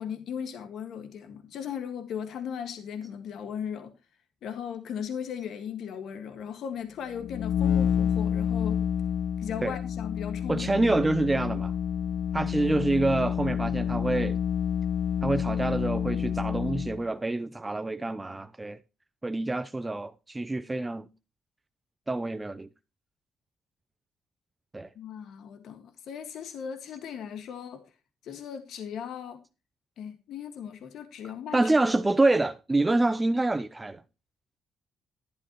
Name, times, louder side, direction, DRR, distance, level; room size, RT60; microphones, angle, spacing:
voice 1, 0.0-3.9 4.4-8.8 9.4-10.8 24.9-27.8 28.2-29.4 30.0-31.6, left 8 dB, 75° left, 1.7 m, -37 dB
sound 1, 7.1-17.0, left 8 dB, 90° left, 0.6 m, -29 dB
voice 2, 10.5-11.7 12.3-14.4 15.2-18.8 19.2-21.1 22.1-22.7 24.7-24.9 31.5-34.0, right 2 dB, 15° right, 0.6 m, -26 dB
12.0 x 11.0 x 3.0 m
cardioid pair, 90°, 0 cm